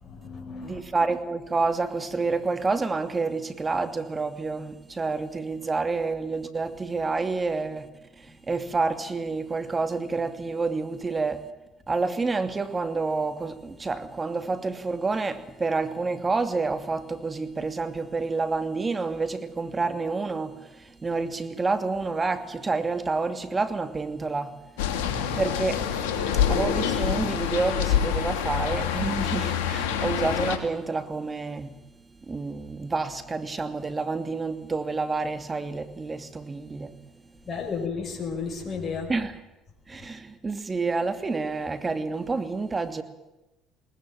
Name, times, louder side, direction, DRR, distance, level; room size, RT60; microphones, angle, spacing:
voice 1, 0.0-0.8 37.5-39.1, left 5 dB, 40° left, 6.3 m, -33 dB
voice 2, 0.6-7.9 8.2-11.5 11.9-24.6 25.4-25.9 26.5-31.8 32.3-37.0 39.1-39.4 39.9-43.0, right 3 dB, 25° right, 2.7 m, -28 dB
sound 1, 24.8-30.6, left 8 dB, 85° left, 2.7 m, -26 dB
20.5 x 19.5 x 9.1 m
hypercardioid pair, 70°, 0 cm